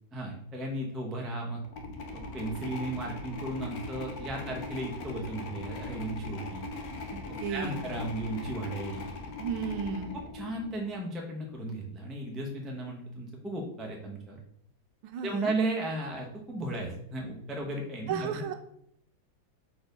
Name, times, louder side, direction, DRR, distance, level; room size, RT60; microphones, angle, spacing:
voice 1, 0.1-1.6 2.1-6.7 7.3-9.1 10.1-14.4 15.2-18.4, right 2 dB, ahead, -1 dB, 0.4 m, -35 dB
sound 1, 1.6-11.0, left 3 dB, 60° left, 1.0 m, -40 dB
voice 2, 7.4-7.8 9.4-10.1 15.0-15.5 18.1-18.7, right 7 dB, 80° right, 8 dB, 1.5 m, -34 dB
4.4 x 4.3 x 5.2 m, 0.72 s
omnidirectional pair, 2.2 m